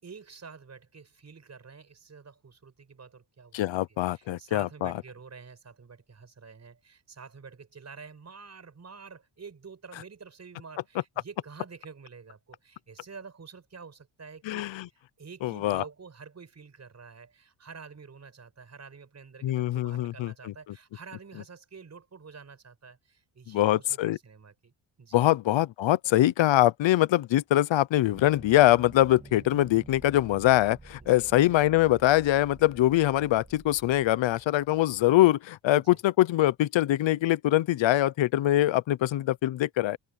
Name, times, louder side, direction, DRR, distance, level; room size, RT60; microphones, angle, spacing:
voice 1, 0.0-24.7 25.0-25.3 31.0-31.3 35.7-36.0, right 5 dB, 35° right, 5.7 m, -48 dB
voice 2, 3.5-4.9 14.5-14.9 15.4-15.8 19.4-20.3 23.5-24.2 25.1-40.0, left 14 dB, 75° left, 0.9 m, -23 dB
sound 1, 28.1-35.3, right 3 dB, 15° right, 2.7 m, -50 dB
cardioid pair, 105°, 45 cm